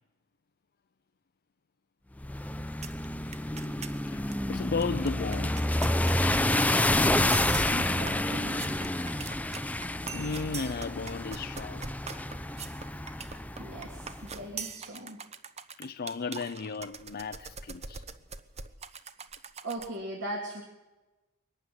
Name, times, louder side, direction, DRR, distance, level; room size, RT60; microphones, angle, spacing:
sound 1, 2.2-14.3, left 1 dB, 5° left, 0.6 m, -29 dB
sound 2, 2.8-3.1 3.3-4.0 4.3-4.4 4.6-20.0, right 5 dB, 30° right, 0.9 m, -43 dB
voice 1, 4.1-5.6 10.1-11.9 15.8-18.0, left 4 dB, 45° left, 0.6 m, -35 dB
voice 2, 7.7-8.8 13.6-15.2 19.6-20.6, right 1 dB, 60° right, 3.2 m, -39 dB
22.5 x 12.0 x 9.7 m
head